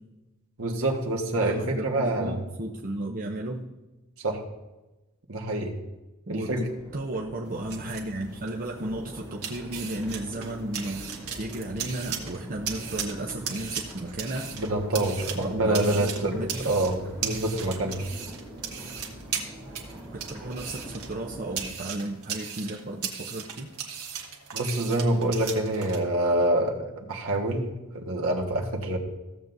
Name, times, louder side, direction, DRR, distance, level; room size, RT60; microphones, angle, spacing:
voice 1, 0.6-2.4 4.2-4.4 5.3-5.8 6.3-6.6 14.5-18.0 24.5-29.0, right 1 dB, 70° right, 1 dB, 1.4 m, -26 dB
voice 2, 1.4-3.7 6.3-6.7 6.9-14.5 15.3-16.7 20.1-23.7, right 1 dB, 40° right, 0 dB, 0.7 m, -34 dB
Crowd, 6.5-21.7, equal, 15° right, 3.3 m, -43 dB
sound 1, 7.4-26.0, right 7 dB, 85° right, 1.4 m, -38 dB
15.5 x 7.4 x 2.6 m, 1.1 s
head